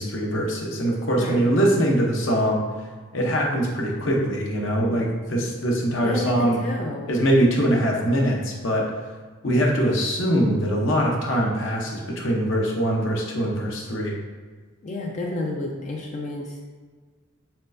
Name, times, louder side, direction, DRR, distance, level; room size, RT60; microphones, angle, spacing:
voice 1, 0.0-2.6 3.1-6.6 7.1-8.9 9.4-14.2, equal, 65° left, -1 dB, 0.8 m, -22 dB
voice 2, 1.1-1.6 6.0-7.1 14.8-16.7, left 2 dB, 35° left, 0 dB, 0.4 m, -30 dB
4.4 x 4.1 x 2.6 m, 1.5 s
head